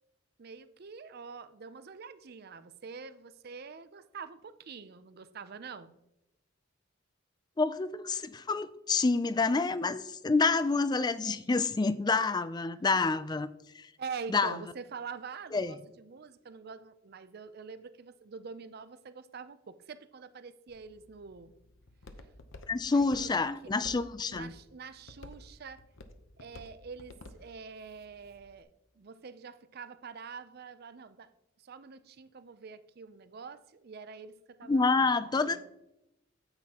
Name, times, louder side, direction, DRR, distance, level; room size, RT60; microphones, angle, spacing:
voice 1, 0.4-5.9 14.0-21.5 22.9-25.8 26.4-28.7 29.0-31.3 31.6-35.7, right 5 dB, 50° right, 0.5 m, -46 dB
voice 2, 7.6-13.5 13.8-13.9 14.3-14.6 15.5-15.7 22.7-24.5 34.7-35.7, left 3 dB, 20° left, 0.3 m, -28 dB
Walk footsteps, 20.7-28.6, left 2 dB, 70° left, 0.8 m, -53 dB
9.5 x 8.3 x 2.9 m
head